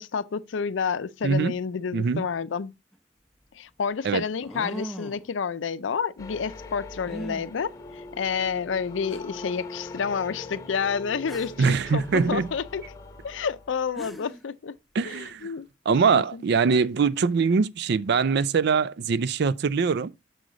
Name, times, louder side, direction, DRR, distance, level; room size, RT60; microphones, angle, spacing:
voice 1, 0.0-2.7 3.5-12.8 13.2-14.7 15.0-15.7 16.1-16.4, left 6 dB, 80° left, 0.5 m, -29 dB
voice 2, 1.2-1.5 1.9-2.2 4.0-4.2 11.6-12.5 14.9-15.5 15.9-20.1, right 5 dB, 60° right, 0.4 m, -23 dB
sound 1, 2.9-3.0 4.4-5.3 7.1-7.5 8.5-8.6 9.1-9.2 11.3-11.7 13.6-13.7 13.9-14.4, right 1 dB, ahead, 0.8 m, -38 dB
sound 2, 6.2-14.1, left 2 dB, 20° left, 1.2 m, -42 dB
6.3 x 6.2 x 3.9 m
head